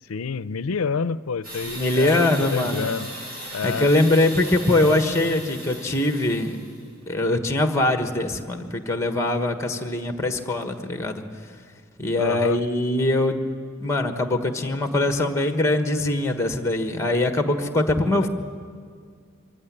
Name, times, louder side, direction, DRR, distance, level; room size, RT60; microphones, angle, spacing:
voice 1, 0.1-3.1 3.5-3.9 12.2-12.6, left 5 dB, 85° left, 17 dB, 0.6 m, -28 dB
sound 1, 1.4-6.8, equal, 45° right, 7.3 m, -37 dB
voice 2, 1.6-2.9 3.6-6.6 7.1-11.2 12.0-13.4 13.8-18.3, left 2 dB, 15° left, 7 dB, 1.4 m, -22 dB
24.0 x 15.5 x 9.9 m, 2.1 s
head